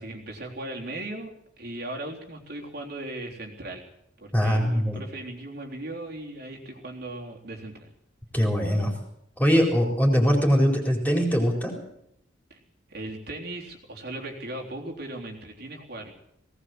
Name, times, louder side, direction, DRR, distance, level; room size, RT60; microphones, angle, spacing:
voice 1, 0.0-1.3 1.6-3.8 4.2-7.9 12.5-12.6 12.9-16.1, right 1 dB, 55° right, 0 dB, 3.6 m, -37 dB
voice 2, 4.3-5.0 8.3-8.9 9.4-11.7, equal, 10° left, 1 dB, 4.2 m, -22 dB
18.5 x 18.5 x 7.8 m, 0.76 s
head